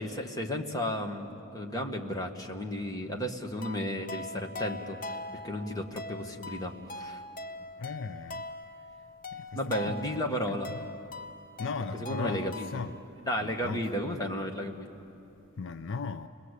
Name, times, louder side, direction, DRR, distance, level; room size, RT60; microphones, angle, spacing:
voice 1, 0.0-5.0 5.4-7.2 9.5-10.7 11.9-12.8 13.2-14.9, equal, 15° left, 2 dB, 1.6 m, -33 dB
sound 1, 3.6-13.0, left 2 dB, 40° left, 0.9 m, -42 dB
voice 2, 7.8-8.4 9.8-10.2 11.6-12.9 13.4-14.2 15.6-16.3, left 4 dB, 60° left, 9 dB, 0.6 m, -37 dB
29.0 x 21.0 x 8.3 m, 2.8 s
head